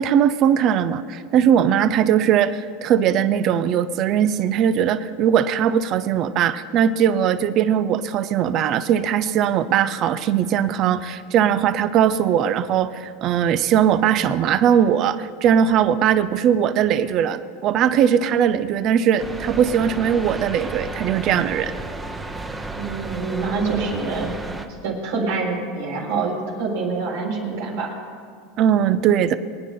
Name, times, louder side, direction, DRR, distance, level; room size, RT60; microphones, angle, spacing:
voice 1, 0.0-21.7 28.6-29.3, right 9 dB, 45° right, 14 dB, 0.7 m, -19 dB
sound 1, 19.2-24.7, right 2 dB, 15° right, 1.1 m, -32 dB
voice 2, 22.8-24.4 24.8-27.9, right 4 dB, 75° right, -3 dB, 4.1 m, -26 dB
23.0 x 10.0 x 3.8 m, 2.3 s
supercardioid pair, 120°, 0 cm